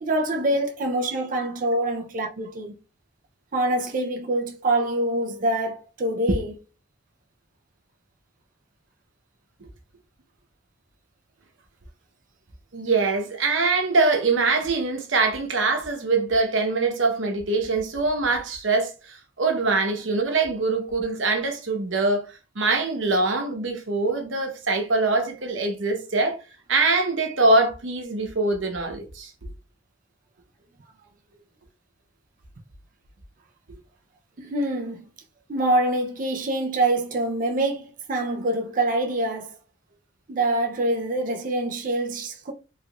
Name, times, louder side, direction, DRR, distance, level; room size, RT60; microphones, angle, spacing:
voice 1, 0.0-2.7 3.5-6.5 34.4-35.0 35.5-39.6 40.3-42.5, right 1 dB, 45° right, 0.5 m, -25 dB
voice 2, 12.7-22.3 22.6-26.4 26.7-29.3, right 3 dB, 85° right, 0.9 m, -23 dB
3.6 x 3.5 x 2.3 m
head